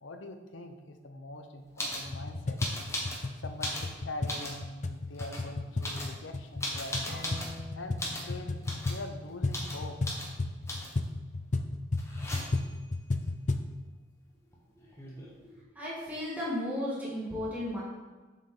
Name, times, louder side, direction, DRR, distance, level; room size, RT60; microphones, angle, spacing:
voice 1, 0.0-2.6 3.4-7.2 7.8-10.0, left 2 dB, 85° left, 6 dB, 0.8 m, -43 dB
sound 1, 1.8-2.1 2.6-3.2 3.5-4.6 5.1-5.4 5.8-7.6 8.0-8.3 8.6-9.0 9.5-9.8 10.0-10.3 10.7-11.0 12.0-12.7 14.5-14.6 14.8-15.4, left 1 dB, 15° left, 1.3 m, -37 dB
sound 2, 2.0-13.7, left 2 dB, 40° left, 0.5 m, -34 dB
sound 3, 7.1-12.2, left 1 dB, 35° right, 0.9 m, -50 dB
voice 2, 15.4-17.8, left 1 dB, 10° right, -7 dB, 1.7 m, -35 dB
7.3 x 7.2 x 3.9 m, 1.3 s
head